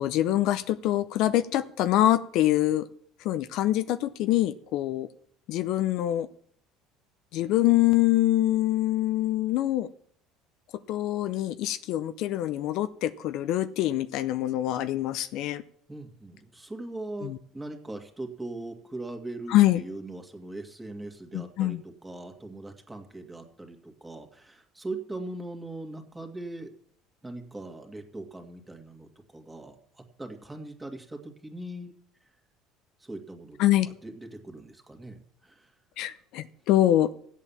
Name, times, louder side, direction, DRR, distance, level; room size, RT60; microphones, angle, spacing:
voice 1, 0.0-2.8 3.2-5.1 5.5-6.3 7.3-9.9 10.9-15.6 17.2-17.4 19.5-19.8 21.3-21.8 33.6-33.9 36.0-37.1, left 14 dB, 65° left, 12 dB, 0.6 m, -25 dB
voice 2, 15.9-26.7 27.2-31.9 33.0-33.6 33.8-35.7, right 2 dB, 10° right, 4 dB, 2.2 m, -40 dB
14.5 x 8.4 x 7.2 m, 0.67 s
supercardioid pair, 105°, 0 cm